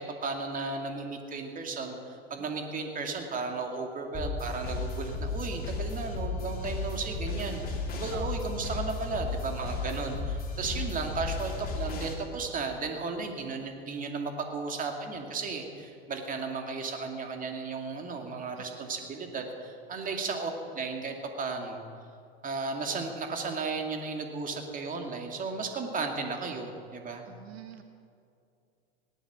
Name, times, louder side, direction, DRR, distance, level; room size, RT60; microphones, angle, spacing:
voice 1, 0.0-20.5 20.8-21.8 22.4-27.3, right 4 dB, 25° right, 3 dB, 2.3 m, -35 dB
sound 1, 4.1-12.1, left 3 dB, 30° left, 3.2 m, -34 dB
voice 2, 8.1-8.5 18.6-18.8 20.0-20.2 27.3-27.8, right 8 dB, 80° right, 6 dB, 1.4 m, -46 dB
18.0 x 11.5 x 6.1 m, 2.5 s
hypercardioid pair, 100°, 31 cm